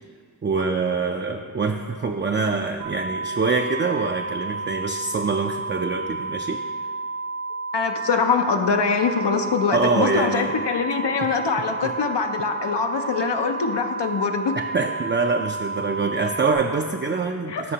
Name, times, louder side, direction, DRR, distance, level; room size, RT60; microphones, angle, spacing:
voice 1, 0.4-6.6 9.7-10.5 11.8-11.9 14.6-17.7, right 4 dB, 30° right, 3 dB, 0.4 m, -25 dB
sound 1, 2.8-16.5, right 3 dB, 85° right, 1.8 m, -31 dB
voice 2, 7.7-14.5 17.5-17.7, left 5 dB, 85° left, 5 dB, 0.6 m, -23 dB
13.0 x 5.4 x 2.8 m, 2.1 s
wide cardioid pair, 55°, 41 cm